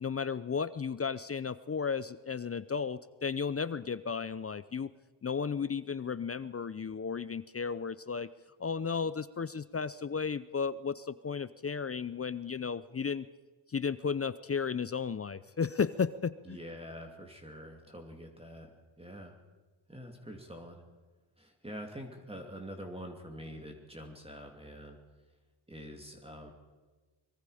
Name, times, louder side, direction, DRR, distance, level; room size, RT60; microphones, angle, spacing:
voice 1, 0.0-4.9 5.2-8.3 8.6-13.3 13.7-16.6, left 6 dB, 30° left, 16 dB, 0.6 m, -34 dB
voice 2, 16.4-18.7 19.0-19.4 19.9-20.8 21.4-25.0 25.7-26.5, equal, 10° right, 2 dB, 2.6 m, -45 dB
24.0 x 22.5 x 5.0 m, 1.3 s
cardioid pair, 80°, 47 cm